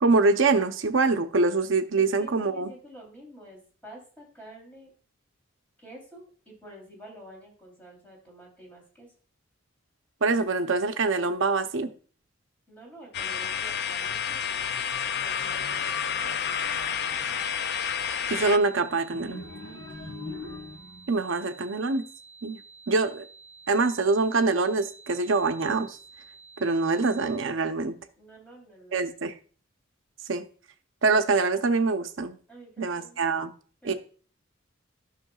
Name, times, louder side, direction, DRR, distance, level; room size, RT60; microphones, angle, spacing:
voice 1, 0.0-2.7 10.2-11.9 18.3-19.4 21.1-22.0 22.4-22.6 22.9-23.2 23.7-26.0 26.6-27.9 28.9-29.3 30.3-30.4 31.0-32.4 32.8-33.5 33.8-33.9, right 3 dB, 70° right, 8 dB, 0.7 m, -24 dB
voice 2, 2.0-4.9 5.8-9.1 12.7-14.4 15.2-16.6 28.2-29.0 32.5-33.2 33.8-34.0, right 1 dB, 10° left, -3 dB, 3.2 m, -49 dB
sound 1, 13.1-18.6, left 7 dB, 50° left, 0.4 m, -30 dB
sound 2, 17.4-27.4, right 4 dB, 30° right, 0.7 m, -51 dB
sound 3, 19.1-21.2, left 2 dB, 85° left, 2.3 m, -40 dB
12.0 x 6.3 x 2.3 m, 0.41 s
head